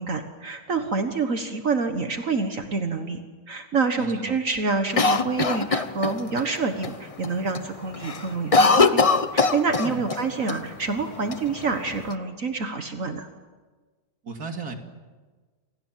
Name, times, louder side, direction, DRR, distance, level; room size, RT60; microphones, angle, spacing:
voice 1, 0.0-9.0 9.3-13.3, right 4 dB, 60° right, 6 dB, 1.9 m, -27 dB
voice 2, 4.0-4.3 9.8-10.0 14.2-14.7, right 4 dB, 80° right, 4 dB, 3.0 m, -35 dB
Cough, 5.0-6.4 6.8-6.9 7.2-7.6 7.9-10.2 10.5-10.6 11.3-12.1, left 4 dB, 30° left, 0.8 m, -21 dB
28.5 x 26.0 x 7.5 m, 1.4 s
omnidirectional pair, 1.6 m